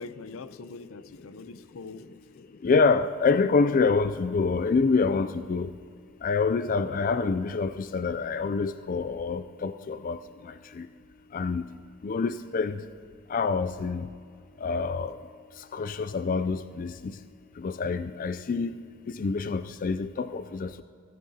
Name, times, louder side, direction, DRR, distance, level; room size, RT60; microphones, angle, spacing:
voice 1, 0.0-2.1, left 3 dB, 85° left, 13 dB, 0.6 m, -43 dB
voice 2, 2.6-5.7 6.2-10.2 11.3-11.6 12.0-12.8 13.3-14.1 14.6-15.1 15.7-16.9 17.6-18.7 19.2-20.8, left 4 dB, 40° left, 11 dB, 0.4 m, -26 dB
23.5 x 15.0 x 2.8 m, 2.3 s
head